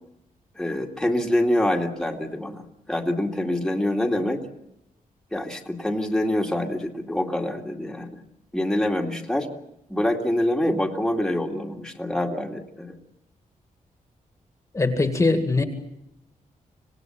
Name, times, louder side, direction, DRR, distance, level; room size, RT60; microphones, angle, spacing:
voice 1, 0.6-4.4 5.3-8.2 8.5-9.5 9.9-13.0, left 1 dB, 5° left, 1 dB, 2.3 m, -25 dB
voice 2, 14.7-15.6, left 3 dB, 20° left, 6 dB, 2.1 m, -21 dB
26.0 x 18.5 x 8.8 m, 0.84 s
wide cardioid pair, 140°, 14 cm